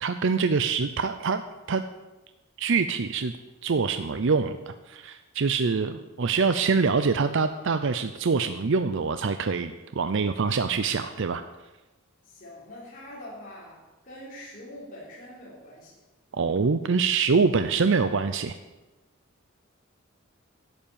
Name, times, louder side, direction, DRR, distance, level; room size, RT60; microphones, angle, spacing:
voice 1, 0.0-1.4 1.7-1.8 2.6-3.3 3.6-11.4 16.3-18.6, right 5 dB, 65° right, 10 dB, 0.6 m, -25 dB
voice 2, 12.2-16.0, left 1 dB, 40° left, -6 dB, 3.6 m, -44 dB
11.5 x 8.2 x 8.8 m, 1.1 s
head